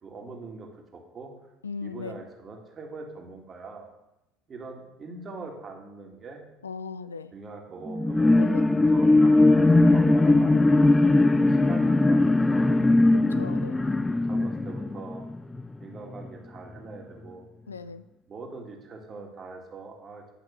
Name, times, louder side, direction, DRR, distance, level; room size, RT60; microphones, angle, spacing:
voice 1, 0.0-1.3 1.8-3.9 4.5-6.4 7.3-10.8 11.5-12.8 14.0-15.2 15.8-17.5 18.3-20.2, right 3 dB, 35° right, 2 dB, 2.2 m, -42 dB
voice 2, 1.6-2.2 6.6-7.3 8.4-8.7 13.1-13.8 17.7-18.0, left 5 dB, 85° left, 14 dB, 0.4 m, -38 dB
Piano, 7.8-13.0, right 1 dB, 20° right, 1.6 m, -40 dB
sound 1, 8.0-15.7 16.2-16.3, left 2 dB, 15° left, 0.5 m, -20 dB
9.5 x 5.9 x 6.4 m, 0.91 s
figure-of-eight pair, 65°, 0 cm